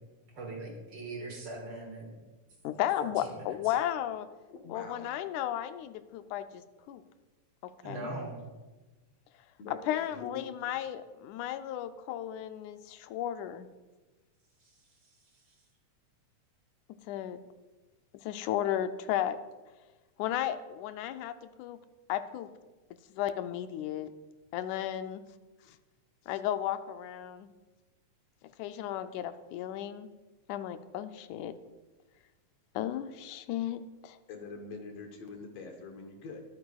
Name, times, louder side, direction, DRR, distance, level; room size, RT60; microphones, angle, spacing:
voice 1, 0.3-2.1 3.0-3.6 7.8-8.3, right 2 dB, 50° right, 0 dB, 2.5 m, -40 dB
voice 2, 2.6-4.3 4.7-6.6 6.9-7.0 7.6-8.1 9.7-13.7 17.1-17.4 18.2-19.4 20.2-21.8 22.1-22.5 23.1-24.1 24.5-25.2 26.3-27.5 28.6-30.1 30.5-31.5 32.8-34.2, left 11 dB, 85° left, 10 dB, 2.0 m, -34 dB
voice 3, 4.5-5.1 9.6-10.5 34.3-36.4, left 4 dB, 65° left, 3 dB, 2.0 m, -44 dB
21.5 x 8.8 x 2.3 m, 1.2 s
omnidirectional pair, 3.4 m